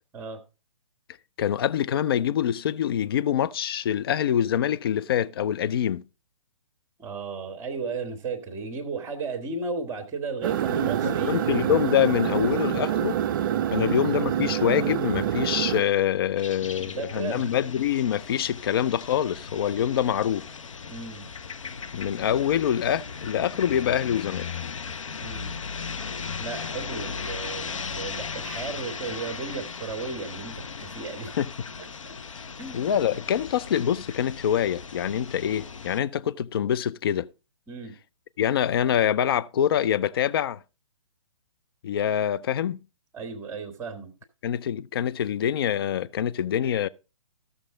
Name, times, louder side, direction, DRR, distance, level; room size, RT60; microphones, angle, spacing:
voice 1, 1.4-6.0 11.0-13.2 13.7-20.5 21.9-24.5 31.4-31.5 32.7-37.3 38.4-40.6 41.8-42.8 44.4-46.9, left 10 dB, 45° left, 0.4 m, -25 dB
voice 2, 7.0-11.4 13.7-13.9 16.6-17.5 20.9-21.3 25.2-25.6 26.4-31.3 32.0-32.1 32.6-33.0 37.7-37.9 43.1-44.1, right 4 dB, 15° right, 1.7 m, -35 dB
sound 1, 10.4-15.8, right 10 dB, 40° right, 0.5 m, -26 dB
sound 2, 16.4-36.0, left 5 dB, 70° left, 0.8 m, -37 dB
14.5 x 6.9 x 3.7 m
figure-of-eight pair, 130°, 17 cm